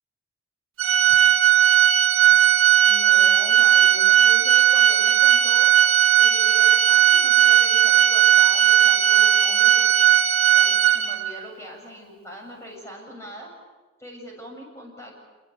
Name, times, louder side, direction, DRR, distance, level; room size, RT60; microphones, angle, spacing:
Organ, 0.8-11.4, right 11 dB, 80° right, 1.0 m, -17 dB
voice 1, 2.8-5.7 6.2-10.1 10.5-13.5 14.0-15.2, equal, 15° left, 0 dB, 7.4 m, -41 dB
27.0 x 21.5 x 8.6 m, 1.3 s
head